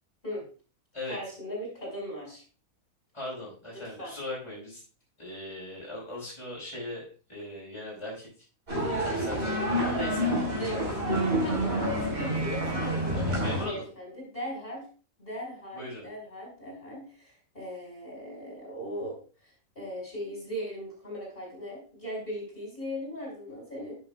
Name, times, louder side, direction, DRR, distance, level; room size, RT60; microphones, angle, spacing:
voice 1, 1.1-2.4 3.7-4.1 10.6-11.0 11.4-13.3 13.6-14.9 15.2-19.2 19.4-19.5 19.8-24.0, equal, 40° left, -3 dB, 5.7 m, -38 dB
voice 2, 3.1-4.8 5.2-7.0 7.3-8.3 9.0-10.3 13.3-13.9 15.7-16.1, left 1 dB, 20° left, -6 dB, 4.9 m, -39 dB
sound 1, 8.7-13.6, equal, 45° right, 4.7 m, -28 dB
11.5 x 8.5 x 2.3 m, 0.38 s
omnidirectional pair, 1.5 m